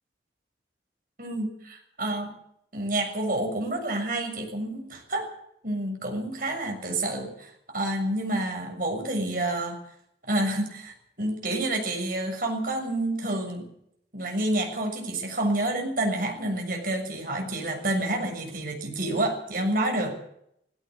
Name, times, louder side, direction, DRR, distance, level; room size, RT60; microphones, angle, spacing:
voice 1, 1.2-2.3 2.7-5.3 5.6-9.8 10.3-13.7 14.1-20.1, right 1 dB, 50° right, 2 dB, 6.9 m, -29 dB
18.5 x 17.0 x 8.3 m, 0.74 s
head